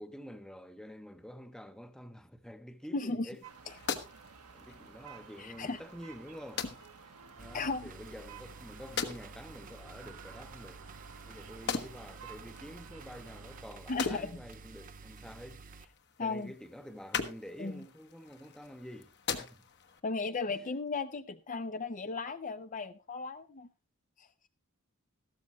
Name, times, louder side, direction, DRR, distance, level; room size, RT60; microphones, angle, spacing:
voice 1, 0.0-3.4 3.9-4.0 4.5-10.8 11.3-15.6 16.2-19.6, equal, 5° left, 0.8 m, -48 dB
voice 2, 2.9-3.3 5.4-5.8 7.5-7.9 13.9-14.3 16.2-16.5 17.6-17.8 20.0-23.7 24.2-24.3, left 3 dB, 35° left, 0.5 m, -35 dB
sound 1, 3.3-20.0, left 6 dB, 50° left, 1.1 m, -43 dB
sound 2, 3.4-13.7, right 6 dB, 85° right, 1.4 m, -53 dB
sound 3, 7.4-15.9, right 4 dB, 40° right, 0.5 m, -51 dB
14.0 x 12.5 x 3.0 m
head